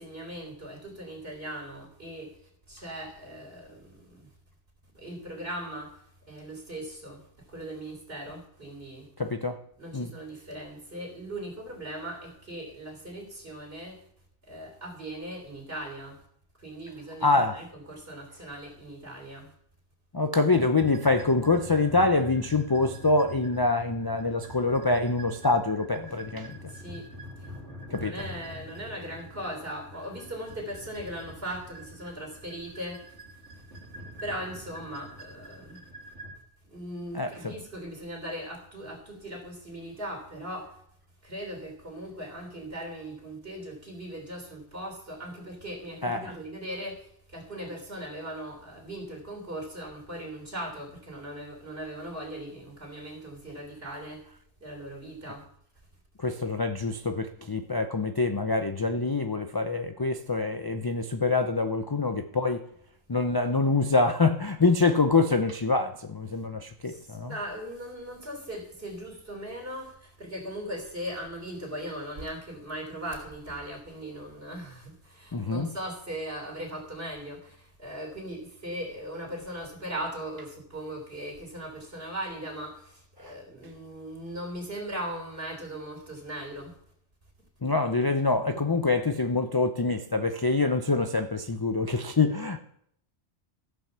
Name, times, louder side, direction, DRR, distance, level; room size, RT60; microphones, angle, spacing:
voice 1, 0.0-2.3 2.7-4.2 4.9-5.9 6.3-7.2 7.5-9.1 9.8-14.0 14.5-16.2 16.6-19.5 26.7-27.1 27.9-33.0 34.2-35.8 36.7-40.7 41.2-47.0 47.3-54.2 54.6-55.4 66.9-82.8 83.2-86.7 88.5-88.6, right 1 dB, 60° right, 3.8 m, -39 dB
voice 2, 9.2-9.6 9.9-10.1 17.2-17.6 20.1-26.6 27.9-28.2 37.1-37.5 46.0-46.3 56.2-62.6 63.1-67.4 75.3-75.7 87.6-92.6, left 3 dB, 30° left, 0.4 m, -25 dB
sound 1, 20.5-36.4, equal, 80° right, 2.8 m, -45 dB
14.5 x 5.9 x 6.8 m
omnidirectional pair, 1.2 m